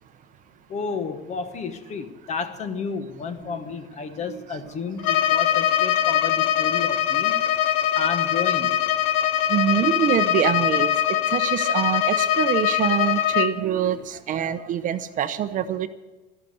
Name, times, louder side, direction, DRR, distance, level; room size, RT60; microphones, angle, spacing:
voice 1, 0.7-7.4 7.9-8.8, left 5 dB, 35° left, 10 dB, 1.1 m, -31 dB
Bowed string instrument, 5.0-13.6, left 11 dB, 70° left, 0.9 m, -22 dB
voice 2, 9.5-10.9 11.3-15.9, right 10 dB, 40° right, 12 dB, 0.7 m, -25 dB
13.0 x 11.5 x 8.0 m, 1.2 s
cardioid pair, 160°, 20 cm